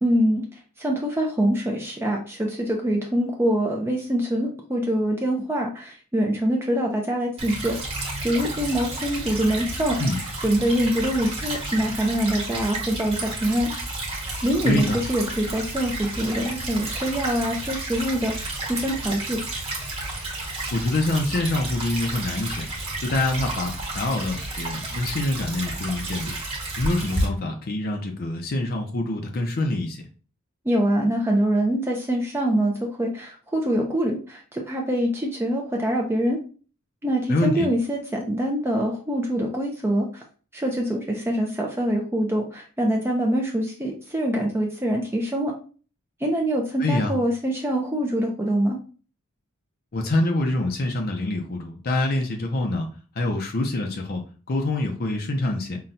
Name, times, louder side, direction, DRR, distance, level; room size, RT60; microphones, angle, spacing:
voice 1, 0.0-0.4 0.8-7.8 8.2-10.0 10.4-13.7 14.4-19.4 30.7-36.4 37.0-40.2 40.5-45.5 46.2-48.8, right 1 dB, 10° right, 0 dB, 0.4 m, -24 dB
Stream / Trickle dribble, 7.4-27.2, right 2 dB, 30° right, 1.3 m, -31 dB
voice 2, 14.6-15.0 20.7-22.6 23.0-26.3 26.8-30.0 37.3-37.7 46.8-47.2 49.9-52.9 53.2-54.2 54.5-55.8, left 2 dB, 45° left, 3 dB, 0.5 m, -25 dB
5.6 x 2.2 x 2.6 m, 0.38 s
head